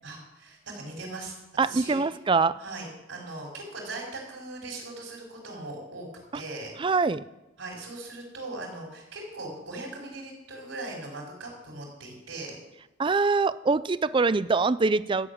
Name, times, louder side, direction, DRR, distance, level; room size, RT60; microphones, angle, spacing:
voice 1, 0.0-1.4 1.6-2.0 2.6-6.1 6.3-6.7 7.6-12.6, right 2 dB, 75° right, -1 dB, 5.2 m, -39 dB
voice 2, 1.6-2.6 6.8-7.2 13.0-15.3, right 4 dB, 25° right, 16 dB, 0.4 m, -24 dB
13.5 x 7.2 x 8.5 m, 0.95 s
head